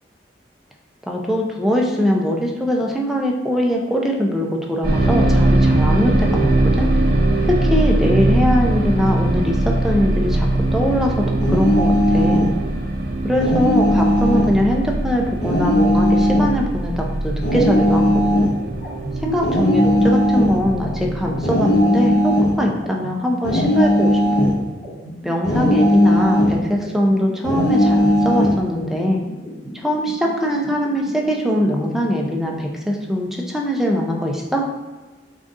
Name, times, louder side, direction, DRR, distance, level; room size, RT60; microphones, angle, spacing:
voice 1, 1.1-6.9 7.5-12.5 13.2-18.4 19.2-24.5 25.2-29.2 29.8-34.7, equal, ahead, -1 dB, 0.4 m, -21 dB
sound 1, 4.8-21.8, right 1 dB, 60° right, 0.6 m, -21 dB
sound 2, 11.4-12.5 13.4-14.5 15.4-16.5 17.4-18.5 19.4-20.6 21.4-22.6 23.4-24.6 25.4-26.6 27.4-28.6, left 1 dB, 70° left, 0.8 m, -17 dB
sound 3, 18.6-32.5, right 1 dB, 30° left, 1.0 m, -36 dB
3.9 x 2.4 x 3.6 m, 1.2 s
head